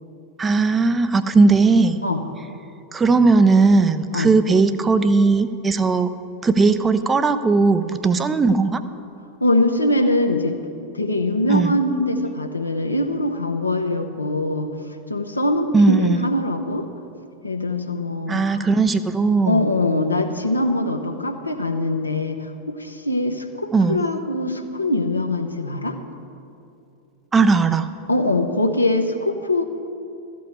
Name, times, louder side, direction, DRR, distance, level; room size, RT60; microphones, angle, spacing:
voice 1, 0.4-2.0 2.9-6.1 6.4-8.8 11.5-11.8 15.7-16.2 18.3-19.7 23.7-24.0 27.3-27.9, right 4 dB, 15° right, 11 dB, 0.5 m, -17 dB
voice 2, 9.4-10.5 10.9-14.7 15.1-16.9 17.4-18.7 19.5-26.0 28.1-29.6, left 1 dB, 85° left, 4 dB, 0.8 m, -22 dB
13.5 x 5.4 x 7.9 m, 2.6 s
figure-of-eight pair, 90°, 0 cm